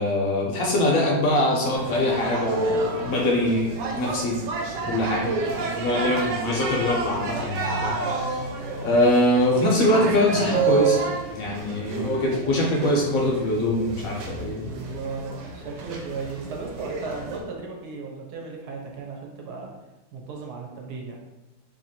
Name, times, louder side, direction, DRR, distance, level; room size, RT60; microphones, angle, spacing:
voice 1, 0.0-4.4 4.9-8.4 8.8-11.0 11.3-14.7, left 1 dB, 65° left, -2 dB, 1.0 m, -23 dB
sound 1, 1.7-17.4, right 4 dB, 85° right, 1.3 m, -30 dB
voice 2, 5.8-6.2 14.5-19.7 20.1-21.2, right 4 dB, 70° right, 0 dB, 1.2 m, -36 dB
2.9 x 2.8 x 4.2 m, 1.0 s
omnidirectional pair, 1.8 m